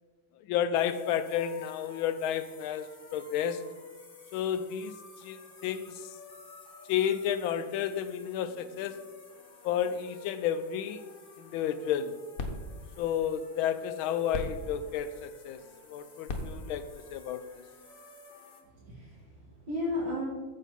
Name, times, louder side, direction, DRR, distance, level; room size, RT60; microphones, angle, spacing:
voice 1, 0.5-3.7 4.3-4.9 5.2-6.1 6.9-9.1 9.6-11.0 11.4-12.2 13.0-15.6 15.9-17.5, left 9 dB, 90° left, 1.4 m, -31 dB
sound 1, 0.7-18.6, left 2 dB, 35° left, 1.1 m, -52 dB
sound 2, 11.8-18.2, left 2 dB, 55° left, 1.2 m, -43 dB
voice 2, 18.6-20.3, left 1 dB, 65° right, 3.1 m, -35 dB
9.1 x 7.3 x 4.1 m
omnidirectional pair, 2.2 m